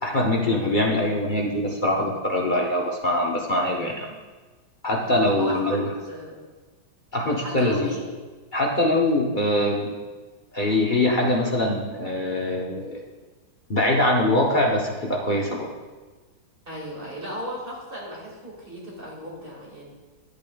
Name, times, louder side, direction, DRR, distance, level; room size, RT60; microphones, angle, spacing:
voice 1, 0.0-4.1 4.8-5.9 7.1-7.9 8.5-9.9 10.5-13.0 13.7-15.7, left 1 dB, 45° left, -2 dB, 0.6 m, -23 dB
voice 2, 5.0-6.4 7.4-8.1 16.7-19.9, equal, 30° right, -4 dB, 2.2 m, -36 dB
10.5 x 8.3 x 2.3 m, 1.3 s
omnidirectional pair, 1.9 m